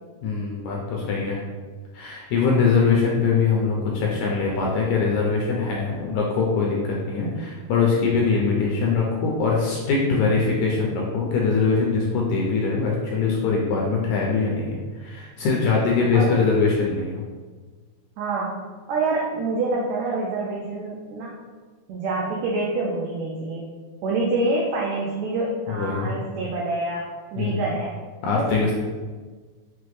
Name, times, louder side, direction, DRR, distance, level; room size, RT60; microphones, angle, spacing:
voice 1, 0.2-1.4 1.9-17.2 25.7-26.1 27.4-27.6 28.2-28.7, left 4 dB, 80° left, -2 dB, 1.7 m, -22 dB
voice 2, 18.2-18.6 18.9-21.3 21.9-23.7 24.0-27.1 27.3-27.9 28.3-28.7, right 2 dB, 85° right, -3 dB, 1.5 m, -26 dB
5.8 x 2.1 x 3.1 m, 1.4 s
omnidirectional pair, 3.7 m